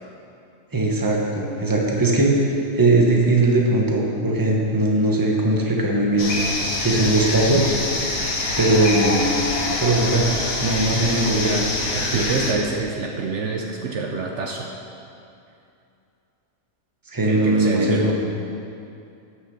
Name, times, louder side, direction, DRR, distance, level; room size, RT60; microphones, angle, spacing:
voice 1, 0.7-7.8 8.6-9.3 9.8-10.3 10.6-11.5 12.1-12.2 17.1-18.1, right 2 dB, 15° right, -1 dB, 1.1 m, -20 dB
sound 1, 6.2-12.5, left 2 dB, 80° left, 1.8 m, -25 dB
voice 2, 10.9-14.7 17.2-18.1, right 4 dB, 65° right, 1 dB, 1.0 m, -27 dB
9.5 x 6.4 x 6.5 m, 2.6 s
omnidirectional pair, 1.4 m